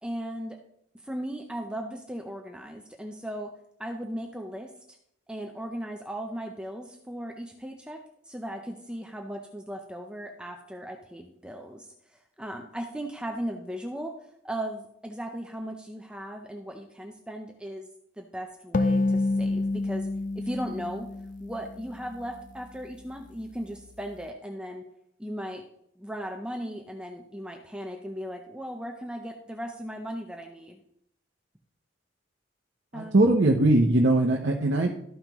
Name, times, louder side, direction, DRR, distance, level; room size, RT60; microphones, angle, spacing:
voice 1, 0.0-0.6 1.0-3.5 3.8-4.7 5.3-8.0 8.3-14.1 14.4-17.9 18.2-20.1 20.3-21.1 21.4-24.8 25.2-25.6 26.0-30.8 32.9-33.4, equal, 5° right, 3 dB, 0.6 m, -37 dB
sound 1, 18.7-22.2, left 2 dB, 40° left, 0.4 m, -28 dB
voice 2, 32.9-34.9, right 2 dB, 60° right, 1 dB, 0.8 m, -21 dB
13.0 x 5.6 x 3.0 m, 0.73 s
head